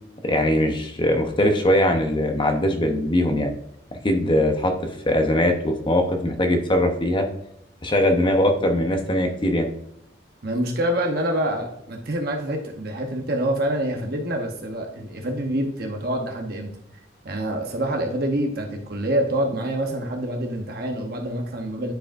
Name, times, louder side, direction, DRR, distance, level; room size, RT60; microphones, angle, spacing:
voice 1, 0.2-3.5 4.0-4.7 5.1-7.3 7.8-9.7, left 1 dB, 25° left, 5 dB, 0.8 m, -21 dB
voice 2, 10.4-16.7 17.2-21.9, right 1 dB, 55° right, 2 dB, 0.9 m, -26 dB
10.0 x 4.9 x 2.5 m, 0.77 s
head